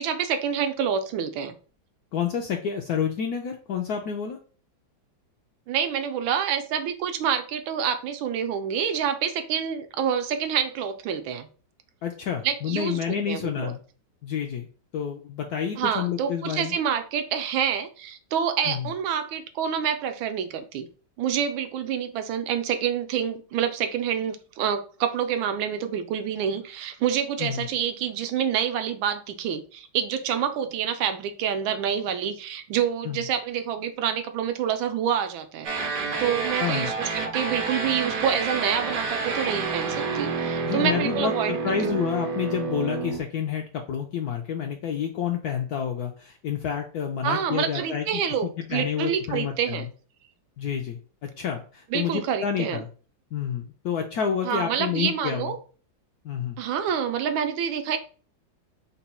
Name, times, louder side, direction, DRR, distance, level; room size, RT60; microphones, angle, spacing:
voice 1, 0.0-1.5 5.7-11.5 12.4-13.0 13.3-13.7 15.8-20.9 21.2-35.7 36.2-42.0 47.2-49.9 51.9-52.8 54.4-55.6 56.6-58.0, right 8 dB, 85° right, 8 dB, 1.4 m, -27 dB
voice 2, 2.1-4.4 12.0-13.8 14.2-14.7 14.9-16.7 18.7-18.9 27.4-27.7 33.0-33.2 36.6-36.9 40.6-49.9 50.6-51.0 51.4-52.9 53.3-55.5 56.2-56.6, left 8 dB, 75° left, 3 dB, 0.9 m, -29 dB
sound 1, 35.6-43.2, right 4 dB, 65° right, 0.9 m, -29 dB
4.0 x 2.2 x 4.2 m, 0.38 s
omnidirectional pair, 2.1 m